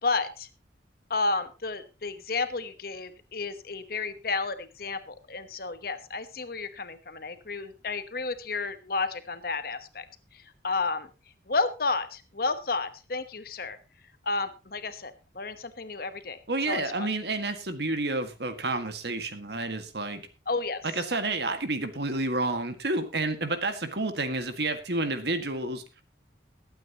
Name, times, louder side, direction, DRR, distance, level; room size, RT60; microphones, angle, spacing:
voice 1, 0.0-0.5 1.1-10.0 10.3-11.1 11.5-13.8 14.2-16.4 16.7-17.1 20.5-20.8, left 3 dB, 50° left, 11 dB, 1.1 m, -31 dB
voice 2, 16.5-20.3 20.8-25.8, right 2 dB, 65° right, 8 dB, 1.8 m, -30 dB
21.0 x 9.1 x 2.9 m, 0.30 s
head